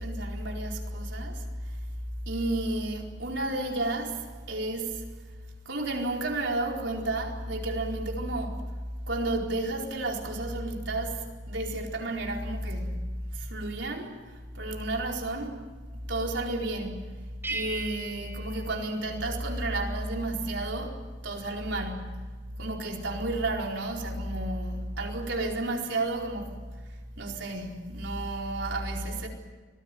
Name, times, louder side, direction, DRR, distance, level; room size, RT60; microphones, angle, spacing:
voice 1, 0.0-1.8 2.3-5.2 5.6-8.7 9.1-13.0 13.3-15.7 16.1-17.1 17.5-22.1 22.6-26.6 26.9-29.3, right 2 dB, 70° right, 4.4 m, -32 dB
sound 1, 17.4-19.7, right 2 dB, 10° right, 5.4 m, -38 dB
25.5 x 19.5 x 9.2 m
head